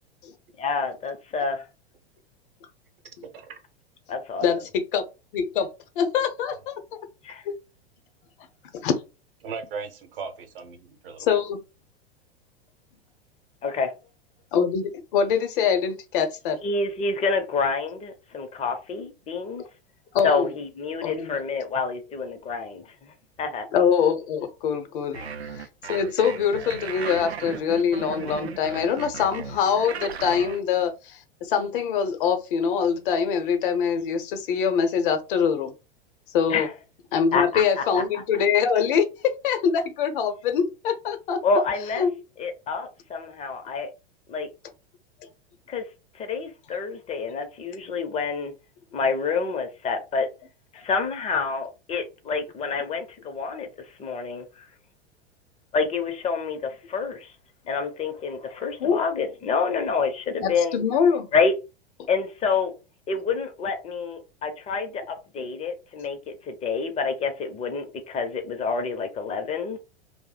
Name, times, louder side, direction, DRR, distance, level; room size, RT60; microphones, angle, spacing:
voice 1, 0.6-1.7 4.1-4.4 7.2-7.4 13.6-13.9 16.6-19.6 20.2-23.1 23.4-23.7 25.1-25.3 36.5-36.7 37.3-38.0 41.4-42.1 42.4-43.9 44.3-44.5 45.7-45.8 46.1-48.5 48.9-50.3 50.7-53.7 54.0-54.7 55.7-57.3 57.7-60.8 61.3-61.5 62.1-62.7 63.1-69.8, left 4 dB, 20° left, 0.6 m, -28 dB
voice 2, 3.0-3.6 9.4-11.4, right 5 dB, 65° right, 0.8 m, -38 dB
voice 3, 4.4-5.0 5.3-5.7 6.0-6.7 7.5-7.6 8.8-8.9 11.2-11.6 14.5-16.6 20.1-20.5 21.0-21.4 23.7-25.2 25.5-35.7 36.3-36.7 37.1-41.4 42.0-42.1 58.8-59.0 60.4-61.3, left 7 dB, 55° left, 0.7 m, -24 dB
sound 1, 25.1-30.6, right 6 dB, 90° right, 0.5 m, -36 dB
2.6 x 2.1 x 3.9 m
figure-of-eight pair, 95°, 31 cm